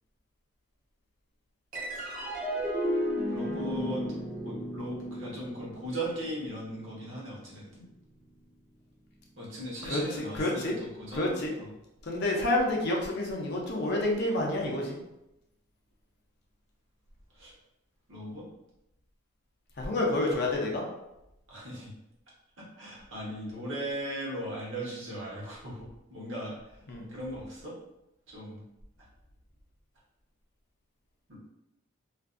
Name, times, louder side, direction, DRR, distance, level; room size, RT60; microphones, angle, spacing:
sound 1, 1.7-8.4, equal, 40° right, 0.6 m, -35 dB
voice 1, 3.3-4.0 4.4-7.6 9.4-11.7 17.3-17.5 18.1-18.4 21.5-21.9 22.8-26.8 27.1-27.7 28.3-28.6 31.3-31.4, right 1 dB, 60° right, -5 dB, 0.9 m, -38 dB
voice 2, 10.4-10.7 11.1-11.5 12.1-14.9 19.8-20.8 26.9-27.1, left 1 dB, 50° left, -1 dB, 0.5 m, -28 dB
2.5 x 2.2 x 2.4 m, 0.90 s
head